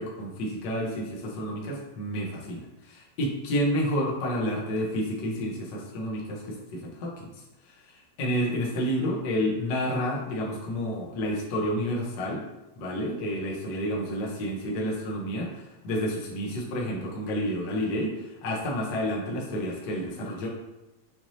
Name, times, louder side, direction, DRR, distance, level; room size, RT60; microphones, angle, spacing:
voice 1, 0.0-6.4 6.7-7.3 8.2-12.4 12.8-20.5, equal, 90° left, -3 dB, 0.9 m, -30 dB
6.3 x 3.0 x 2.7 m, 1.0 s
omnidirectional pair, 3.3 m